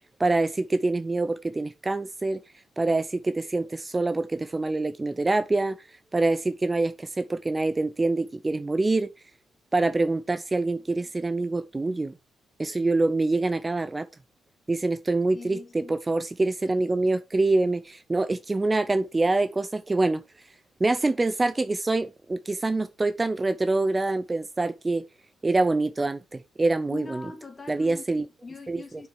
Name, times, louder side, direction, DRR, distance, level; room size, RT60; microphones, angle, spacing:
voice 1, 0.2-2.4 2.8-5.8 6.1-9.1 9.7-12.1 12.6-14.1 14.7-20.2 20.8-25.0 25.4-27.2 27.7-28.2 28.7-28.8, right 2 dB, 20° right, 0.6 m, -25 dB
voice 2, 15.3-15.9 26.9-29.1, left 3 dB, 30° left, 2.6 m, -42 dB
7.1 x 6.2 x 6.0 m
cardioid pair, 90°, 0 cm